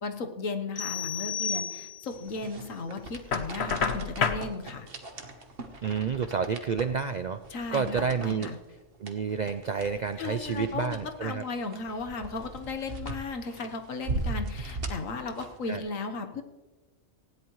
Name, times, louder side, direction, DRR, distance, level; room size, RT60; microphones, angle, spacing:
voice 1, 0.0-4.9 7.5-8.6 10.2-16.4, left 3 dB, 80° left, 6 dB, 1.5 m, -35 dB
sound 1, 0.8-2.3, left 7 dB, 40° left, 1.4 m, -33 dB
sound 2, 2.1-15.8, right 2 dB, 45° right, 1.4 m, -39 dB
Knock, 3.3-4.5, left 6 dB, 55° left, 1.1 m, -28 dB
voice 2, 5.8-7.4 7.7-8.5 9.0-11.4 15.7-15.8, right 6 dB, 65° right, 10 dB, 0.4 m, -29 dB
19.0 x 16.5 x 3.1 m, 1.2 s
omnidirectional pair, 1.4 m